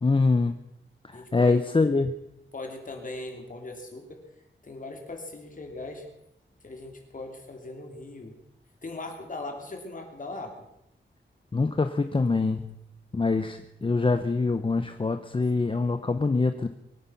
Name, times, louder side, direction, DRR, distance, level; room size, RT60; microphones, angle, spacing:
voice 1, 0.0-0.5 1.3-2.1 11.5-12.6 13.1-16.7, left 3 dB, 25° left, 9 dB, 0.7 m, -24 dB
voice 2, 1.1-1.6 2.5-4.2 4.6-6.0 6.6-8.3 8.8-10.5, left 2 dB, 40° left, 3 dB, 3.0 m, -39 dB
23.5 x 9.4 x 5.8 m, 0.83 s
wide cardioid pair, 160°, 20 cm